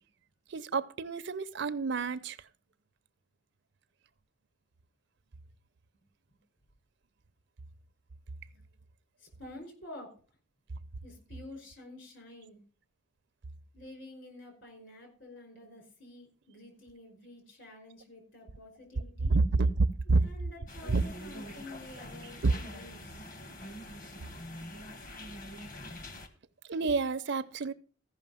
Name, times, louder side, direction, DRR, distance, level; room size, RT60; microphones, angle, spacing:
voice 1, 0.5-2.4 19.3-20.2 20.9-21.0 22.4-22.5 26.7-27.7, right 3 dB, 55° right, 0.6 m, -28 dB
voice 2, 9.2-10.1 11.0-12.6 13.7-19.3 20.0-23.3, left 1 dB, 55° left, 5.1 m, -49 dB
sound 1, 20.7-26.3, left 1 dB, 40° left, 1.4 m, -45 dB
15.0 x 5.8 x 5.6 m
head